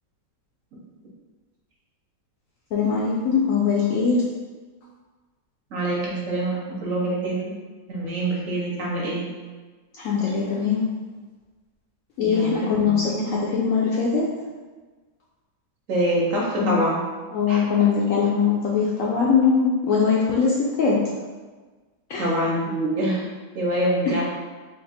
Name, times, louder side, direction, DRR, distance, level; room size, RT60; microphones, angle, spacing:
voice 1, 2.7-4.2 10.0-10.8 12.2-14.3 16.6-16.8 17.3-21.0 22.1-22.3, left 5 dB, 70° left, -5 dB, 0.8 m, -21 dB
voice 2, 5.7-7.6 7.9-9.3 12.2-13.0 15.9-17.0 17.5-17.6 22.2-23.2 23.5-24.3, right 1 dB, 60° right, -4 dB, 1.0 m, -25 dB
3.4 x 2.4 x 4.1 m, 1.3 s
omnidirectional pair, 1.8 m